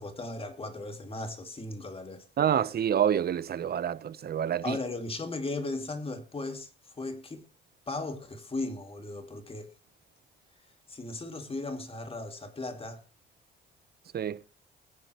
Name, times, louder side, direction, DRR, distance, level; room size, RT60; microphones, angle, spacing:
voice 1, 0.0-2.2 4.6-6.7 7.0-7.4 7.9-9.7 10.9-13.0, left 2 dB, 30° left, 2.4 m, -36 dB
voice 2, 2.4-4.8 14.1-14.4, right 9 dB, 50° right, 0.9 m, -27 dB
20.5 x 9.9 x 3.1 m
cardioid pair, 90°, 20 cm